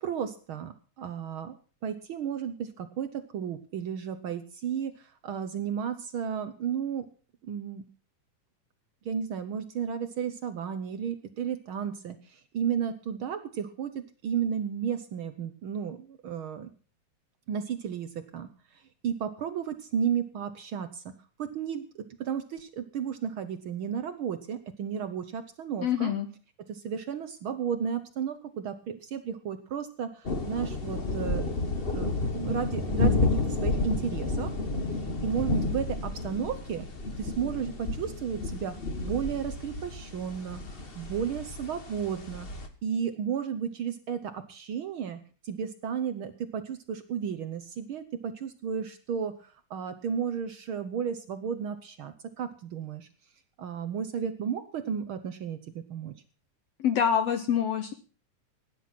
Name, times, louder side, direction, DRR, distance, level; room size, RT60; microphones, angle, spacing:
voice 1, 0.0-1.5 1.8-7.0 7.4-7.8 9.0-16.7 17.5-21.0 21.4-26.1 26.6-31.4 31.9-34.5 35.2-36.9 37.2-42.5 42.8-53.1 53.6-56.1, right 7 dB, 75° right, 10 dB, 1.2 m, -33 dB
voice 2, 25.8-26.3 56.8-57.9, left 8 dB, 65° left, 8 dB, 1.9 m, -26 dB
sound 1, 30.3-42.7, left 3 dB, 40° left, 0.8 m, -31 dB
17.5 x 10.5 x 6.0 m, 0.39 s
omnidirectional pair, 3.6 m